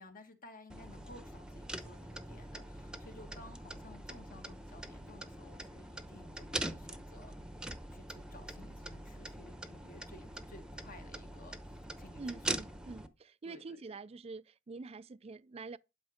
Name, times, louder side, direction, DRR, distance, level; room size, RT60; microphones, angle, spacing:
voice 1, 0.0-7.4 7.9-12.4 13.4-14.0, left 2 dB, 45° left, 1.6 m, -56 dB
sound 1, 0.7-13.1, right 1 dB, 5° right, 0.8 m, -43 dB
voice 2, 12.2-15.8, right 3 dB, 30° right, 0.4 m, -46 dB
11.5 x 5.2 x 5.0 m
head